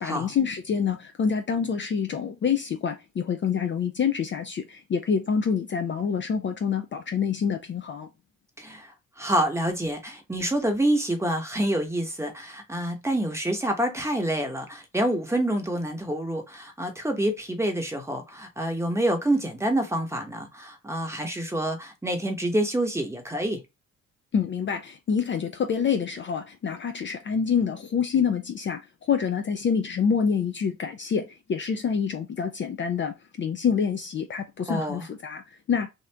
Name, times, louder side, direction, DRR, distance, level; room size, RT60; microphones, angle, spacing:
voice 1, 0.0-8.1 24.3-28.8 29.1-35.9, left 6 dB, 40° left, 0.5 m, -27 dB
voice 2, 8.6-8.9 9.2-23.6 34.7-35.0, right 1 dB, 10° right, 1.0 m, -27 dB
2.8 x 2.4 x 3.3 m
cardioid pair, 90°, 30 cm